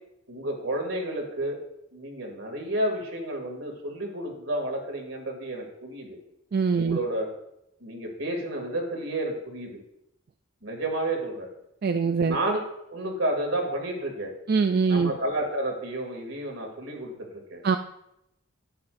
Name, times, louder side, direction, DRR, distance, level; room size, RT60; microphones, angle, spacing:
voice 1, 0.3-1.6 1.9-6.2 6.7-7.3 7.8-9.8 10.6-11.5 12.2-12.6 12.9-14.3 14.9-17.6, right 1 dB, 80° right, 1 dB, 2.6 m, -31 dB
voice 2, 6.5-7.0 11.8-12.4 14.5-15.1 17.6-17.8, right 5 dB, 45° right, 7 dB, 0.3 m, -23 dB
12.0 x 9.6 x 2.6 m, 0.81 s
head